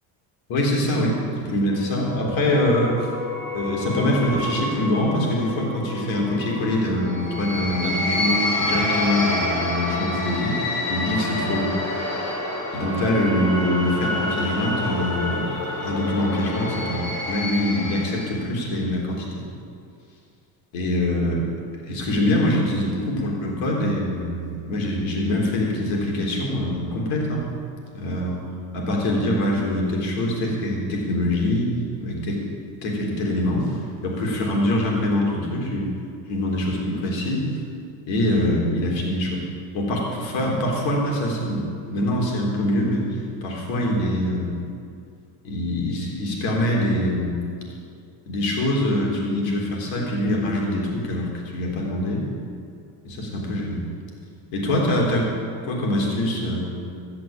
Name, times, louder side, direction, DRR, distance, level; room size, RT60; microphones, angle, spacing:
voice 1, 0.5-3.0 3.5-11.7 12.7-15.5 15.8-19.3 20.7-21.4 21.8-27.5 27.9-28.4 28.7-31.7 32.0-32.4 32.8-35.9 36.3-37.5 38.1-39.5 39.7-44.5 45.4-47.4 48.3-52.3 53.0-53.8 54.5-55.3 55.6-56.7, left 1 dB, 70° left, -1 dB, 3.7 m, -24 dB
sound 1, 1.7-18.5, left 2 dB, 45° left, 3.9 m, -28 dB
14.5 x 6.0 x 8.8 m, 2.4 s
supercardioid pair, 90°, 47 cm